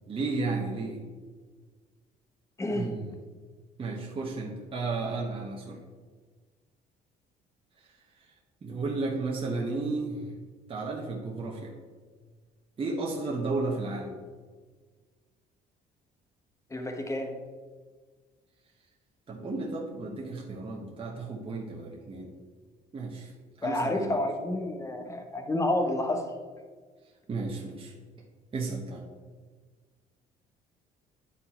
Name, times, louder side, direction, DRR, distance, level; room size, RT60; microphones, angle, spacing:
voice 1, 0.1-1.0 2.7-3.1 3.8-5.8 8.6-10.3 10.7-11.7 12.8-14.1 19.3-22.3 22.9-23.3 23.6-24.2 27.3-27.9 28.5-29.0, right 3 dB, 30° right, -2 dB, 1.1 m, -33 dB
voice 2, 2.6-3.0 16.7-17.3 23.6-26.3, left 1 dB, 20° left, 4 dB, 1.1 m, -29 dB
9.9 x 4.6 x 4.3 m, 1.5 s
cardioid pair, 110°, 17 cm